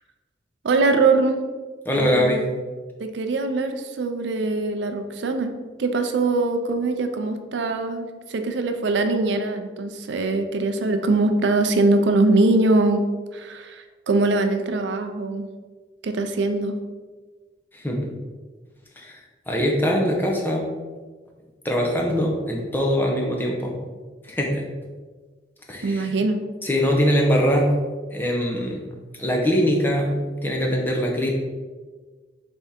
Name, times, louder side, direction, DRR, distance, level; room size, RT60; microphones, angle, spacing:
voice 1, 0.6-1.4 1.9-2.4 3.0-13.1 13.3-15.5 16.0-16.8 25.8-26.4, right 2 dB, 80° right, 7 dB, 0.4 m, -22 dB
voice 2, 1.9-2.4 17.7-18.1 19.0-19.2 19.5-20.7 21.6-23.8 24.2-24.6 25.7-26.1 26.6-27.8 28.1-28.8 29.2-31.3, equal, 10° left, -1 dB, 0.6 m, -22 dB
3.5 x 3.5 x 4.2 m, 1.4 s
head